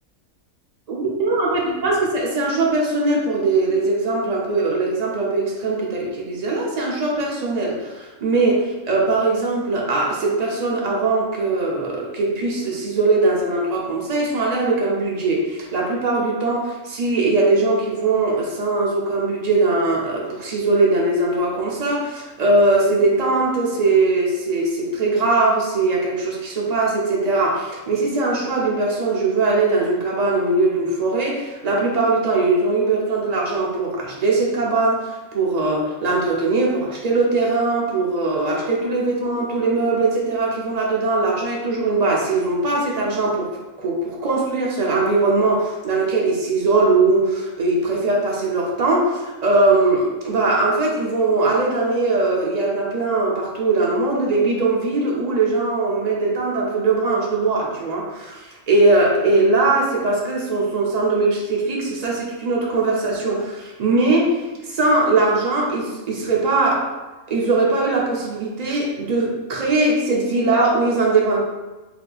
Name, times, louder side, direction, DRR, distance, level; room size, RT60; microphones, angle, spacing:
voice 1, 0.9-43.5 43.8-66.9 67.3-71.4, right 3 dB, 75° right, -3 dB, 0.3 m, -20 dB
4.0 x 2.7 x 2.3 m, 1.1 s
omnidirectional pair, 1.5 m